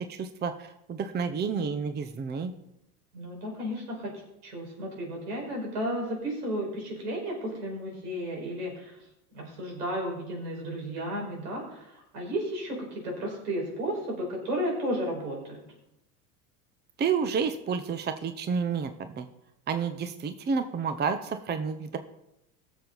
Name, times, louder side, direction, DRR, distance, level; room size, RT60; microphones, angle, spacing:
voice 1, 0.1-2.5 17.0-19.3 19.7-22.0, right 6 dB, 20° right, 9 dB, 0.8 m, -30 dB
voice 2, 3.1-4.1 4.4-9.0 9.3-15.6, equal, 80° right, -1 dB, 5.0 m, -33 dB
17.0 x 7.2 x 4.0 m, 0.87 s
hypercardioid pair, 95°, 45 cm